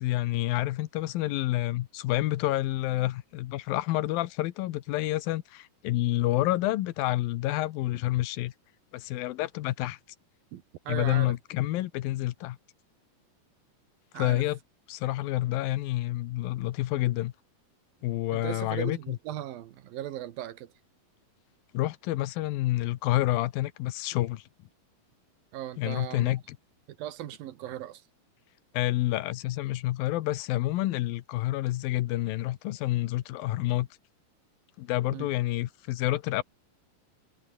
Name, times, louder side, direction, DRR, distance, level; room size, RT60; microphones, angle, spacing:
voice 1, 0.0-8.5 8.9-10.0 10.9-12.6 14.2-14.6 14.9-17.3 18.0-19.2 21.7-24.4 25.8-26.6 28.7-33.9 34.8-36.4, left 16 dB, 90° left, 2.8 m, -28 dB
voice 2, 10.5-11.3 14.1-14.4 18.3-20.7 25.5-26.3 27.0-28.0 35.1-35.3, right 13 dB, 90° right, 3.2 m, -38 dB
omnidirectional pair, 4.0 m